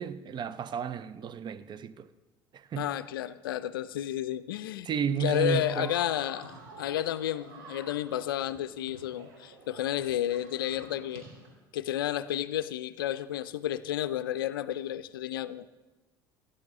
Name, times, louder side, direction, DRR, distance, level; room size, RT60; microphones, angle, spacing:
voice 1, 0.0-2.1 2.5-3.0 4.9-6.0, right 6 dB, 40° right, 0.6 m, -32 dB
voice 2, 2.8-4.9 5.2-11.3 11.7-15.7, left 12 dB, 80° left, 0.4 m, -31 dB
sound 1, 5.5-11.5, right 3 dB, 75° right, 2.8 m, -50 dB
16.5 x 10.0 x 3.6 m
hypercardioid pair, 65°, 12 cm